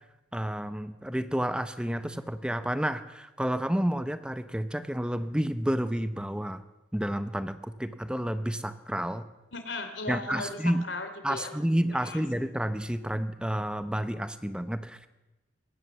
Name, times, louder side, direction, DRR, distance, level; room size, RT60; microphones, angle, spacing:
voice 1, 0.3-6.6 6.9-9.3 10.1-10.8 11.2-15.1, equal, 5° right, 10 dB, 0.8 m, -30 dB
voice 2, 9.5-11.5 12.0-12.2, left 3 dB, 80° left, 8 dB, 2.9 m, -37 dB
22.0 x 18.0 x 7.1 m, 1.0 s
head